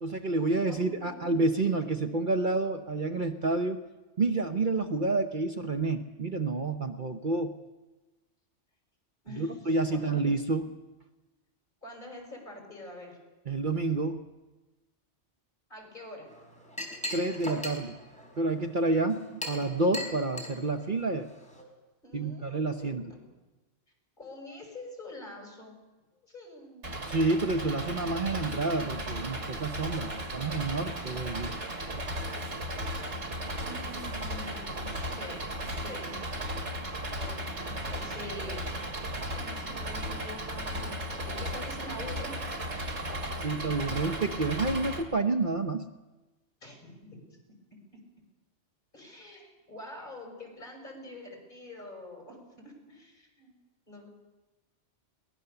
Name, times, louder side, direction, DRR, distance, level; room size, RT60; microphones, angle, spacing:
voice 1, 0.0-3.8 4.2-7.6 9.3-10.7 13.5-14.2 17.1-18.0 18.4-21.3 22.1-23.1 27.1-31.5 43.4-45.8, right 3 dB, 45° right, 6 dB, 1.0 m, -29 dB
voice 2, 0.7-1.3 9.2-10.2 11.8-13.2 15.7-16.3 22.0-23.3 24.2-25.8 26.2-27.0 33.6-36.1 37.1-38.7 39.3-42.4 46.6-47.4 48.9-53.5 53.9-54.1, left 1 dB, 40° left, 1 dB, 6.3 m, -45 dB
Chink clink, 16.3-21.6, left 1 dB, 5° left, 4.3 m, -40 dB
Engine, 26.8-45.0, right 1 dB, 75° right, 2.7 m, -36 dB
22.5 x 19.0 x 6.9 m, 1.1 s
omnidirectional pair, 1.2 m